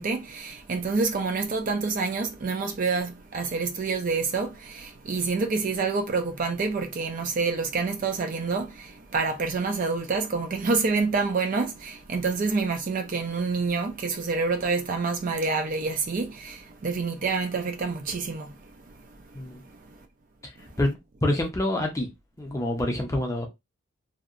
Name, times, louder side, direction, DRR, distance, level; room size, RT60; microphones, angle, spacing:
voice 1, 0.0-18.5, right 4 dB, 40° right, 0.3 m, -27 dB
voice 2, 20.8-22.1 22.4-23.5, left 1 dB, 15° left, 0.5 m, -27 dB
2.7 x 2.1 x 2.4 m
head